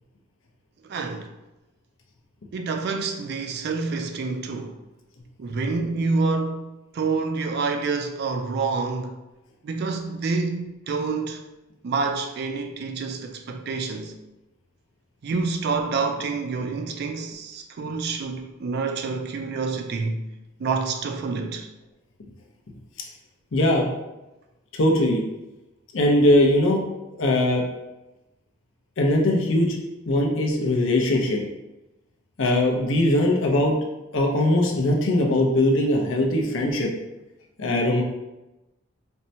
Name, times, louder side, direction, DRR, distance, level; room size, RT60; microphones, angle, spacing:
voice 1, 0.8-1.3 2.5-4.8 5.4-9.2 9.6-11.4 11.8-14.1 15.2-20.3 20.6-21.7, right 4 dB, 50° right, 0.3 m, -27 dB
voice 2, 23.5-23.9 24.7-25.2 25.9-26.8 27.2-27.6 29.0-29.8 30.1-31.4 32.4-33.8 34.1-36.9 37.6-38.0, left 1 dB, 60° left, 0.6 m, -20 dB
4.3 x 2.1 x 2.7 m
head